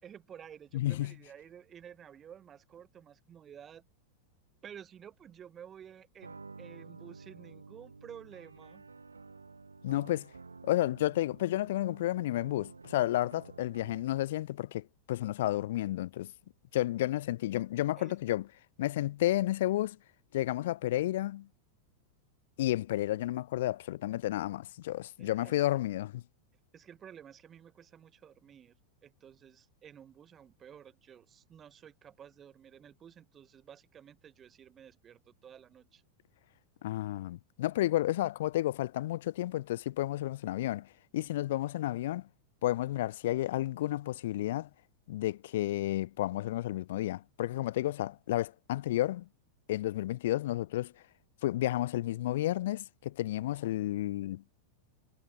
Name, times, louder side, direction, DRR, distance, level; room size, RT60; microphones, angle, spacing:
voice 1, 0.0-3.8 4.6-8.8 17.9-18.1 25.2-25.6 26.7-28.8 29.0-36.0, right 9 dB, 25° right, 4.1 m, -52 dB
voice 2, 0.7-1.1 9.8-10.3 10.6-16.3 16.7-18.5 18.8-20.0 20.3-21.5 22.6-26.2 36.8-40.9 41.1-42.3 42.6-44.7 45.1-49.3 49.7-50.9 51.4-54.4, left 15 dB, 55° left, 0.6 m, -31 dB
sound 1, 6.2-14.2, right 4 dB, 80° right, 7.0 m, -51 dB
figure-of-eight pair, 90°, 0 cm